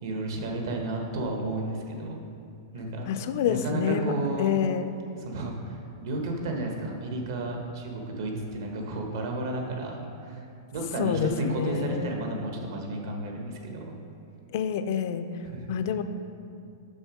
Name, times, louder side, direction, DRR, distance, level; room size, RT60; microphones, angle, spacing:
voice 1, 0.0-2.2 2.7-3.1 3.4-4.5 5.2-10.4 10.7-13.9 15.4-15.7, right 2 dB, 60° right, 1 dB, 1.2 m, -32 dB
voice 2, 3.1-4.1 4.4-4.9 11.0-12.1 14.5-15.3 15.7-16.0, left 8 dB, 50° left, 10 dB, 0.3 m, -27 dB
6.3 x 6.0 x 4.9 m, 2.5 s
supercardioid pair, 170°, 2 cm